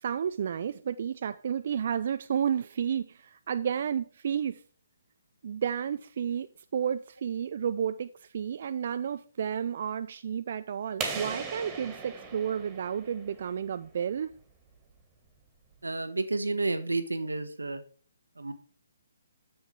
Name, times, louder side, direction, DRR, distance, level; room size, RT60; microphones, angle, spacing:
voice 1, 0.0-4.6 5.4-14.3, right 8 dB, 50° right, 0.4 m, -31 dB
sound 1, 11.0-13.6, right 5 dB, 20° right, 2.1 m, -38 dB
voice 2, 15.8-17.8 18.4-18.5, right 3 dB, 85° right, 1.1 m, -31 dB
7.3 x 7.1 x 4.7 m
figure-of-eight pair, 140°, 0 cm